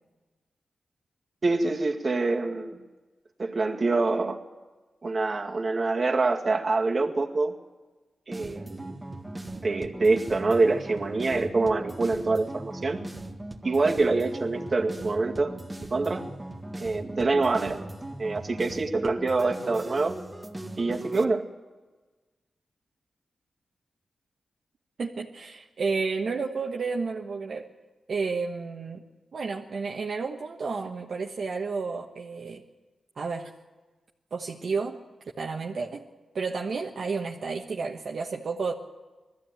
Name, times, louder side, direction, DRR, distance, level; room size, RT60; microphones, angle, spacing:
voice 1, 1.4-2.8 3.4-4.4 5.0-7.6 8.3-9.0 9.6-13.0 13.6-15.5 15.8-16.3 16.8-17.8 18.2-20.2 20.8-21.5, right 3 dB, 45° right, 2 dB, 2.1 m, -25 dB
sound 1, 8.3-21.2, right 1 dB, 15° right, 1.8 m, -39 dB
voice 2, 25.0-27.7 28.1-29.0 29.3-32.6 33.2-33.5 34.3-35.0 35.4-36.0 36.3-38.7, right 4 dB, 65° right, 0 dB, 1.3 m, -31 dB
19.5 x 14.5 x 9.1 m, 1.3 s
cardioid pair, 75°, 0 cm